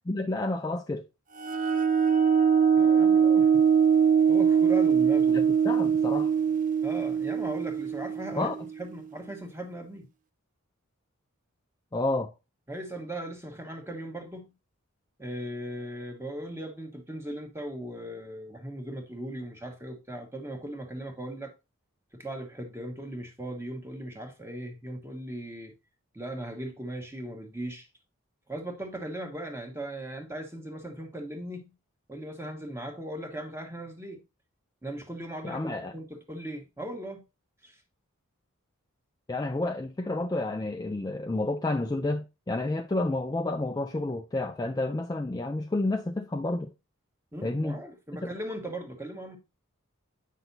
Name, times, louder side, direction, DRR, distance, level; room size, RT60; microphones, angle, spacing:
voice 1, 0.1-1.0 5.3-6.3 8.3-8.5 11.9-12.3 35.4-35.9 39.3-46.7 47.4-47.8, left 2 dB, 15° left, 0.3 m, -30 dB
sound 1, 1.4-8.8, right 7 dB, 35° right, 0.6 m, -22 dB
voice 2, 2.8-3.6 4.3-5.5 6.8-8.5 8.8-10.1 12.7-14.5 15.2-21.5 22.1-25.7 26.1-27.9 28.5-31.7 32.1-34.2 34.8-37.2 37.6-37.8 47.3-49.4, right 1 dB, 10° right, 1.3 m, -38 dB
9.0 x 5.9 x 2.7 m
head